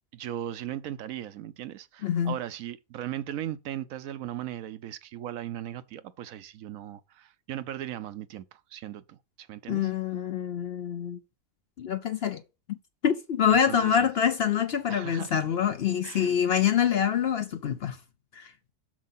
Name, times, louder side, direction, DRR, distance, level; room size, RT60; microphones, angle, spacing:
voice 1, 0.1-9.9 13.5-14.1 14.9-15.4 16.0-16.3, right 12 dB, 75° right, 1.0 m, -38 dB
voice 2, 2.0-2.4 9.7-11.2 11.8-12.4 12.7-12.8 13.0-18.0 18.3-18.5, left 8 dB, 55° left, 0.7 m, -26 dB
7.4 x 6.5 x 4.2 m
omnidirectional pair, 1.5 m